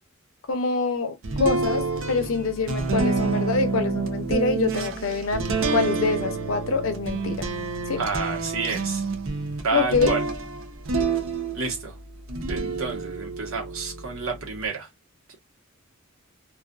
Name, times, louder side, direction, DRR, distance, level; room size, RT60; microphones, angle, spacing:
voice 1, 0.5-7.5 7.9-8.0 9.7-10.2, left 4 dB, 75° left, 0.6 m, -25 dB
sound 1, 1.2-11.8 12.3-14.6, right 4 dB, 65° right, 0.6 m, -28 dB
voice 2, 8.0-9.0 9.6-10.2 11.5-12.0 12.5-14.9, right 4 dB, 90° right, 1.1 m, -29 dB
2.4 x 2.4 x 2.3 m
head